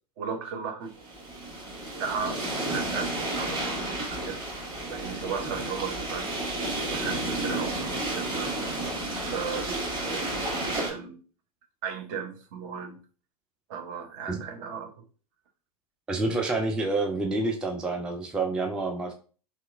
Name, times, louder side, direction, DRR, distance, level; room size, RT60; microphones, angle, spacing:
voice 1, 0.2-1.0 2.0-6.3 6.9-8.7 9.3-11.2 11.8-13.0 13.7-15.0, right 6 dB, 50° right, 0.7 m, -36 dB
sound 1, 1.0-10.9, right 2 dB, 20° right, 1.2 m, -32 dB
voice 2, 16.1-19.1, right 2 dB, 5° right, 0.3 m, -28 dB
3.1 x 2.8 x 2.4 m
figure-of-eight pair, 95°, 20 cm